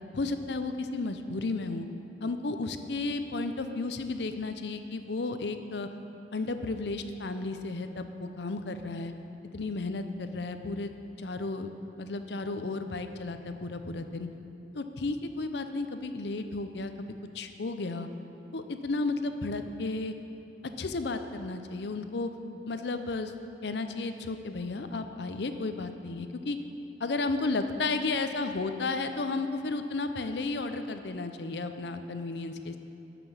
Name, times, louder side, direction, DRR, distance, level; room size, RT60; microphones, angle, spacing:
voice 1, 0.1-1.9 2.2-5.9 6.3-9.1 9.5-10.9 11.2-11.7 12.0-14.3 14.7-16.9 17.3-18.1 18.5-20.1 20.8-22.3 22.7-23.3 23.6-26.6 27.0-32.8, left 3 dB, 70° left, 8 dB, 0.6 m, -33 dB
11.5 x 6.0 x 7.1 m, 2.9 s
head